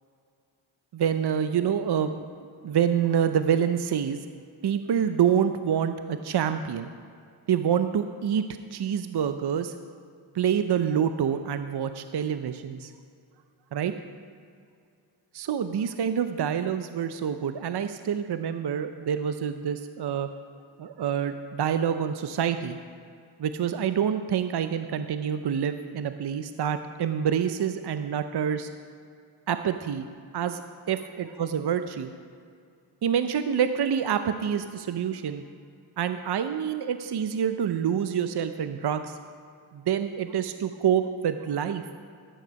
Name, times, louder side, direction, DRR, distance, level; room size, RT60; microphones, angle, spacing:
voice 1, 0.9-2.1 2.6-4.2 4.6-6.9 7.5-8.4 8.7-9.7 10.3-12.9 13.7-13.9 15.3-20.3 20.8-22.8 23.4-28.7 29.5-30.1 30.3-30.6 30.9-32.1 33.0-35.4 36.0-39.2 39.7-41.8, right 8 dB, 50° right, 9 dB, 0.7 m, -27 dB
12.0 x 9.0 x 5.3 m, 2.4 s
cardioid pair, 45°, 49 cm